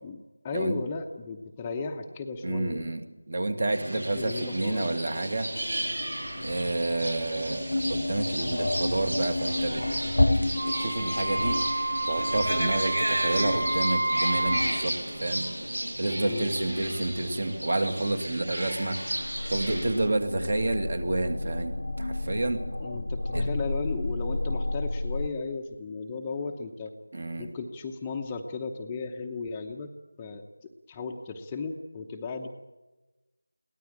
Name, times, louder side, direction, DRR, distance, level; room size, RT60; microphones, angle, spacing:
voice 1, 0.4-2.8 3.9-4.9 16.2-16.5 22.8-26.9 27.4-29.9 30.2-30.4 30.9-32.5, left 4 dB, 15° left, 3 dB, 0.9 m, -35 dB
voice 2, 2.4-3.0 3.3-5.5 6.4-10.1 10.4-10.5 10.8-11.6 12.1-15.5 16.0-19.0 19.5-22.6 23.3-23.5 27.1-27.5, right 2 dB, 50° right, 8 dB, 2.5 m, -29 dB
sound 1, 3.7-20.1, right 1 dB, 85° right, 6.5 m, -34 dB
sound 2, 5.6-25.3, left 2 dB, 65° left, 0.8 m, -32 dB
Wind instrument woodwind instrument, 10.5-14.7, right 2 dB, 65° right, 6.2 m, -29 dB
22.5 x 18.0 x 8.8 m, 1.1 s
figure-of-eight pair, 170°, 0 cm